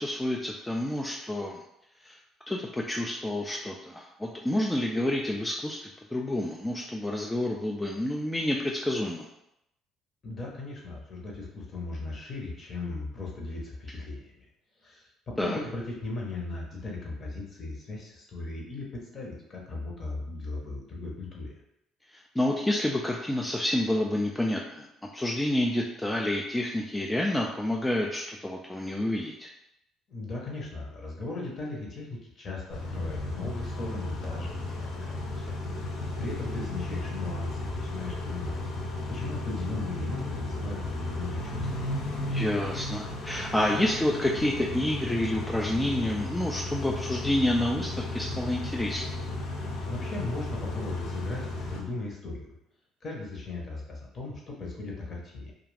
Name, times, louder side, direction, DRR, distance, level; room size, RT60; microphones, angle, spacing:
voice 1, 0.0-1.6 2.0-2.2 2.5-9.3 15.4-15.6 22.1-24.9 25.1-29.5 42.3-49.0, left 1 dB, 10° left, -1 dB, 0.3 m, -29 dB
voice 2, 10.2-14.3 14.8-21.6 30.1-35.5 36.2-41.9 49.9-52.5 53.0-55.5, left 2 dB, 40° left, -2 dB, 0.9 m, -37 dB
Car / Idling / Accelerating revving vroom, 32.7-51.8, left 2 dB, 70° left, 0.6 m, -34 dB
2.4 x 2.3 x 3.3 m, 0.82 s
supercardioid pair, 85°, 0 cm